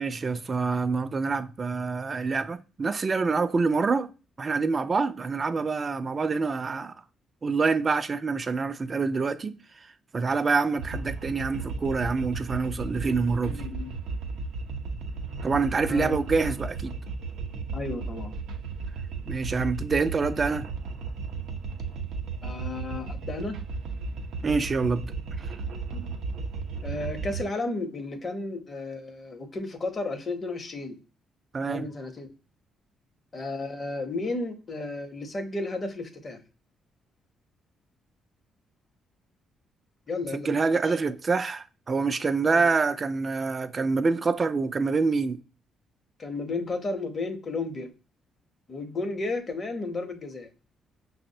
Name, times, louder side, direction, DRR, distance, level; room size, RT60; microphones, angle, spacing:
voice 1, 0.0-4.1 4.4-6.9 7.4-9.6 10.1-13.7 15.4-16.9 19.3-20.7 24.4-25.1 25.4-25.5 31.5-31.9 40.3-45.4, right 4 dB, 35° right, 0.3 m, -26 dB
sound 1, 10.8-27.4, right 4 dB, 85° right, 0.6 m, -35 dB
voice 2, 13.4-13.9 15.8-16.2 17.7-18.4 22.4-23.6 25.9-26.2 26.8-31.0 31.7-32.3 33.3-36.4 40.1-40.6 40.8-41.0 42.5-42.6 46.2-47.9 48.7-50.5, left 2 dB, 40° left, 0.7 m, -33 dB
5.8 x 2.0 x 2.6 m
cardioid pair, 90°, 0 cm